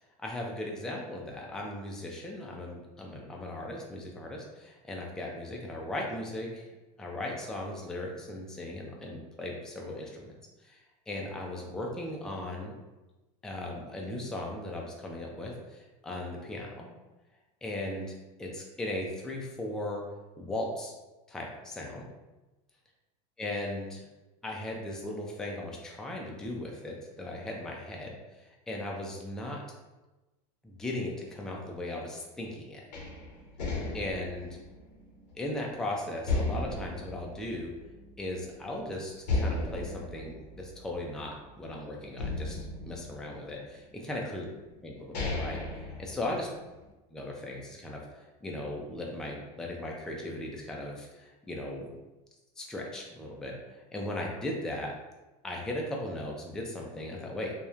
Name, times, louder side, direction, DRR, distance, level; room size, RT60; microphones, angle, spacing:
voice 1, 0.2-6.7 7.0-10.3 10.6-12.7 13.4-16.9 17.6-18.1 18.4-20.0 20.4-20.9 21.3-22.1 23.4-24.0 24.4-29.6 30.6-32.8 33.9-34.5 35.4-37.7 38.2-44.5 44.8-46.5 47.1-51.9 52.6-54.9 55.4-57.5, left 1 dB, 5° left, -1 dB, 0.3 m, -37 dB
sound 1, 32.9-35.7 36.3-38.2 38.5-38.6 39.2-41.6 42.2-43.8 44.5-44.6 44.9-46.8, left 2 dB, 85° left, 0.7 m, -35 dB
2.9 x 2.1 x 2.3 m, 1.1 s
supercardioid pair, 115°, 21 cm